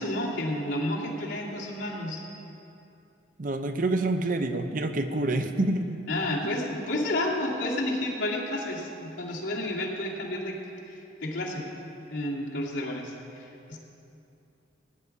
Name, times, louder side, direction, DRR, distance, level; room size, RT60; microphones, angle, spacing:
voice 1, 0.0-2.2 6.1-10.6 10.9-11.7 12.1-13.8, left 1 dB, 80° left, -5 dB, 2.5 m, -31 dB
voice 2, 3.4-6.0, right 2 dB, 45° right, 8 dB, 0.6 m, -27 dB
17.0 x 9.7 x 4.8 m, 2.8 s
head